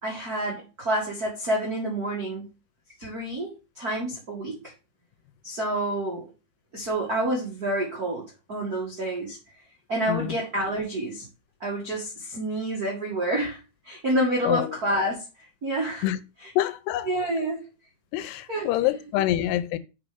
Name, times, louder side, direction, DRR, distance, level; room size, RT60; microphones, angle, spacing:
voice 1, 0.0-2.5 3.0-4.6 5.4-6.2 6.7-8.2 8.5-9.4 9.9-11.2 11.6-13.6 13.8-15.2 15.6-16.1 16.4-16.5 17.0-17.6 18.5-19.2, right 1 dB, 35° right, 1.7 m, -28 dB
voice 2, 14.4-14.8 16.0-16.2 16.6-17.1 18.1-19.8, left 14 dB, 85° left, 2.8 m, -26 dB
7.2 x 5.3 x 5.1 m
omnidirectional pair, 4.7 m